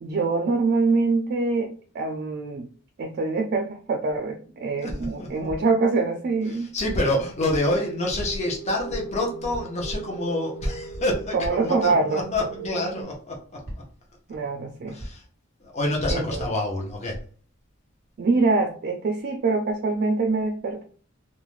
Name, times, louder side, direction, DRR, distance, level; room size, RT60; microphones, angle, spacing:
voice 1, 0.0-2.7 3.0-6.7 11.3-12.2 14.3-15.0 16.1-16.4 18.2-20.8, right 3 dB, 50° right, 3 dB, 0.3 m, -24 dB
voice 2, 4.8-5.3 6.5-13.6 14.9-15.2 15.6-17.2, left 1 dB, 35° left, -1 dB, 0.7 m, -27 dB
sound 1, 5.5-5.9 6.8-7.1 8.2-8.6 9.5-9.9 10.9-11.1 12.3-12.5 13.6-14.1 15.0-15.4 16.4-16.6, equal, 65° left, 1.3 m, -40 dB
sound 2, 7.7-13.0, right 3 dB, 85° left, 1.0 m, -39 dB
2.4 x 2.1 x 3.0 m, 0.42 s
head